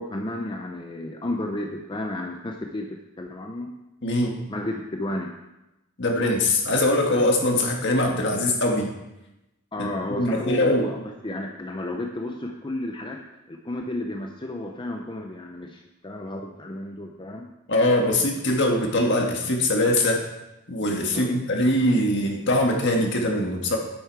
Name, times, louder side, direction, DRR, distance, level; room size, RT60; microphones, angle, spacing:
voice 1, 0.0-3.7 4.5-5.3 9.7-17.5 21.1-21.4, left 1 dB, 20° left, 2 dB, 0.6 m, -32 dB
voice 2, 4.0-4.4 6.0-8.9 9.8-10.9 17.7-20.3 20.7-23.8, left 1 dB, 55° left, 1 dB, 1.6 m, -22 dB
9.4 x 7.7 x 4.7 m, 0.95 s
head